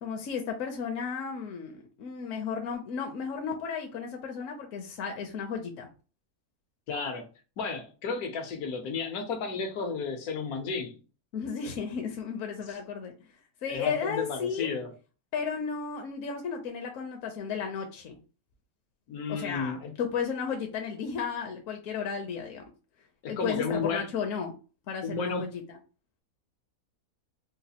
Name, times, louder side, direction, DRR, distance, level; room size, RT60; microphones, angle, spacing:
voice 1, 0.0-5.9 11.3-13.1 13.6-14.7 15.3-18.2 19.3-22.6 23.3-24.5 24.9-25.8, left 6 dB, 70° left, 0.9 m, -34 dB
voice 2, 6.9-7.3 7.6-11.0 12.7-12.8 13.6-14.9 19.1-19.9 23.2-24.1 25.0-25.6, left 4 dB, 85° left, 1.3 m, -33 dB
4.0 x 2.3 x 2.8 m
omnidirectional pair, 1.5 m